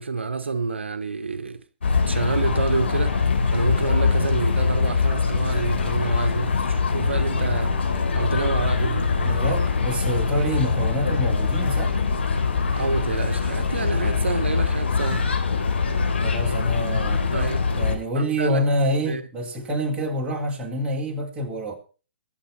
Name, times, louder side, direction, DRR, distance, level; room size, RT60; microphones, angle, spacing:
voice 1, 0.0-1.6 2.1-7.8 8.1-9.4 12.7-15.2 17.3-17.7 18.1-18.7 18.9-19.2, right 4 dB, 75° right, 1.1 m, -28 dB
sound 1, 1.8-18.0, left 5 dB, 75° left, 3.8 m, -23 dB
voice 2, 9.2-11.9 16.2-17.2 17.8-21.7, equal, 15° right, 3.8 m, -26 dB
22.5 x 7.5 x 4.3 m
figure-of-eight pair, 125°, 6 cm